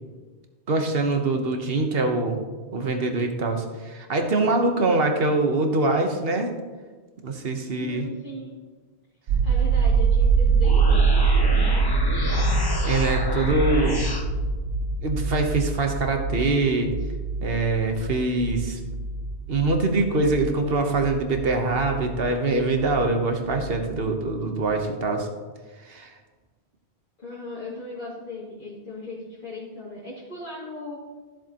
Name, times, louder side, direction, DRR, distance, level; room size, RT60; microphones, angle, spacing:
voice 1, 0.7-2.4 2.7-6.5 7.2-8.1 12.8-14.0 15.0-16.9 17.4-18.8 19.5-25.3 25.9-26.1, right 3 dB, 65° right, 4 dB, 1.3 m, -24 dB
voice 2, 7.7-8.5 9.4-12.1 27.2-30.9, left 2 dB, 50° left, -11 dB, 2.7 m, -37 dB
sound 1, 9.3-23.1 23.4-24.3, right 4 dB, 90° right, 0.9 m, -24 dB
sound 2, 10.5-14.3, left 1 dB, 25° left, 0.8 m, -31 dB
13.5 x 7.5 x 3.0 m, 1.4 s
omnidirectional pair, 1.1 m